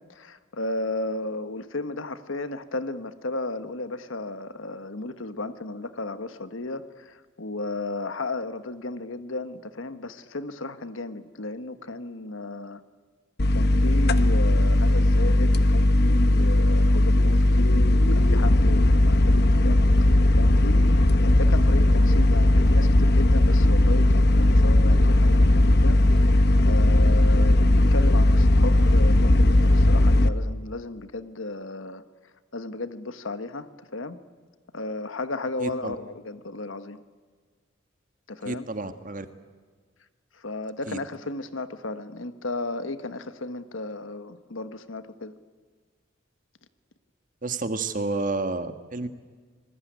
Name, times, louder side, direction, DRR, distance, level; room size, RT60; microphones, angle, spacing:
voice 1, 0.1-12.8 13.5-26.0 26.3-32.0 32.5-34.2 34.7-37.0 38.3-38.6 40.3-45.3, left 2 dB, 80° left, 11 dB, 1.4 m, -34 dB
sound 1, 13.4-30.3, left 1 dB, 55° left, 1.1 m, -18 dB
voice 2, 35.6-36.0 38.4-39.3 40.9-41.0 47.4-49.1, right 3 dB, 40° right, 9 dB, 1.6 m, -30 dB
26.5 x 20.5 x 9.4 m, 1.5 s
head